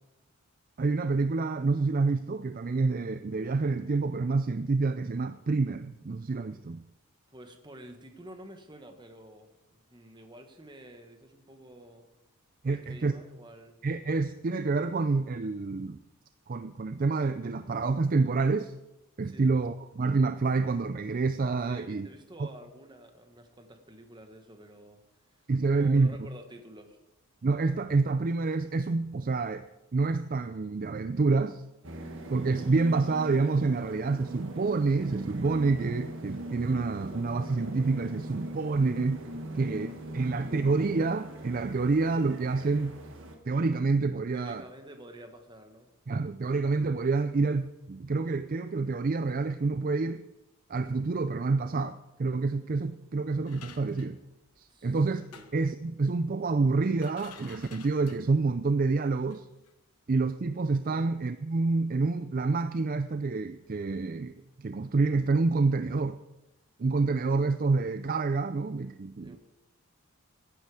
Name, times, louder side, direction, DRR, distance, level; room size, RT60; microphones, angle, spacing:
voice 1, 0.8-6.8 12.6-13.2 13.8-16.0 16.5-18.7 19.2-22.1 22.4-22.5 25.5-26.2 27.4-29.7 29.9-31.6 32.3-39.2 39.6-39.9 40.1-42.9 43.5-44.6 46.1-50.2 50.7-54.2 54.6-59.5 60.1-66.2 66.8-69.4, right 3 dB, 40° right, 11 dB, 0.4 m, -28 dB
voice 2, 7.3-12.1 12.7-13.8 19.2-19.5 21.7-25.0 25.3-27.0 39.4-39.7 40.4-40.6 44.3-45.9 54.7-55.0 55.3-55.5 60.9-61.1 69.2-69.4, right 1 dB, 20° right, 6 dB, 1.4 m, -49 dB
sound 1, 31.8-43.4, right 1 dB, 60° right, 1.7 m, -40 dB
sound 2, 53.5-54.7 55.2-55.7 56.6-56.7 56.9-58.4 59.0-59.4 59.7-59.8, left 7 dB, 85° left, 1.0 m, -52 dB
17.0 x 10.0 x 4.9 m, 0.96 s
head